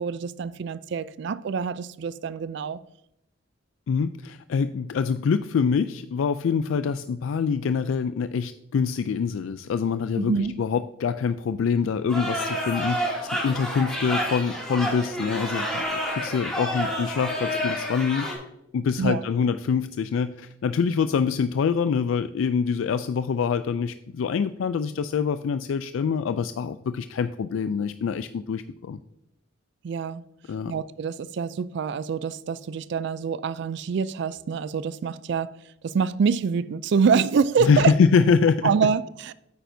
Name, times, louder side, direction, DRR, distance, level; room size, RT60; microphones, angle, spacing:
voice 1, 0.0-2.8 10.2-10.5 19.0-19.2 29.8-30.2 30.7-35.5 35.8-37.9 38.6-39.3, right 6 dB, 60° right, 0.3 m, -25 dB
voice 2, 3.9-18.3 18.7-29.0 30.5-30.7 37.6-38.7, left 6 dB, 80° left, 0.3 m, -25 dB
sound 1, 12.1-18.4, equal, 5° left, 2.5 m, -29 dB
9.0 x 8.8 x 2.7 m
head